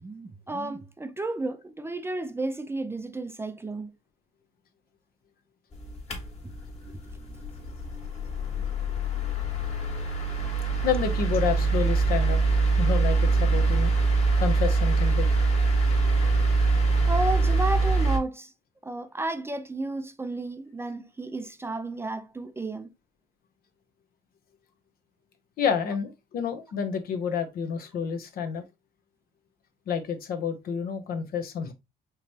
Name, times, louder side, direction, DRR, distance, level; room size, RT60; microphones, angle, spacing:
voice 1, 0.0-3.9 17.1-18.5 18.8-22.9, right 2 dB, 15° right, 0.4 m, -32 dB
sound 1, 5.7-18.2, right 3 dB, 40° left, 1.8 m, -24 dB
voice 2, 10.8-12.4 12.8-13.9 14.4-15.3 25.6-28.6 29.9-31.7, left 7 dB, 60° left, 0.9 m, -29 dB
5.1 x 3.1 x 2.7 m
cardioid pair, 110°, 17 cm